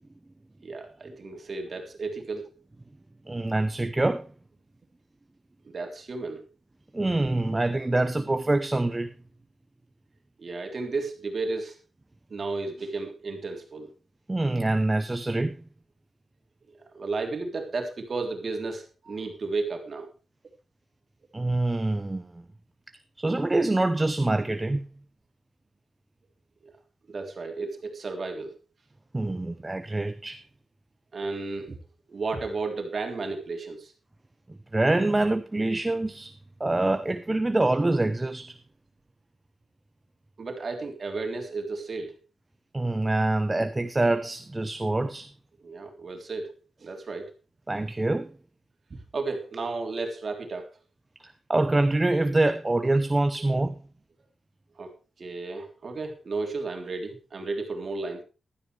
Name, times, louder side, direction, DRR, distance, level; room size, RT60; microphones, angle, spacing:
voice 1, 0.6-2.6 5.6-6.4 10.4-11.8 12.3-13.9 16.7-20.1 26.6-26.7 27.1-28.6 31.1-31.8 32.1-33.9 40.4-42.1 45.6-47.3 48.9-50.7 54.8-54.9 55.2-58.2, right 3 dB, 45° right, 3.4 m, -33 dB
voice 2, 3.3-4.3 6.9-9.1 14.3-15.6 21.3-22.4 23.2-24.8 29.1-30.4 34.7-36.3 36.6-38.6 42.7-45.3 47.7-48.3 51.2-53.7, right 2 dB, 20° right, 0.8 m, -25 dB
15.5 x 12.5 x 3.4 m
wide cardioid pair, 130°, 0 cm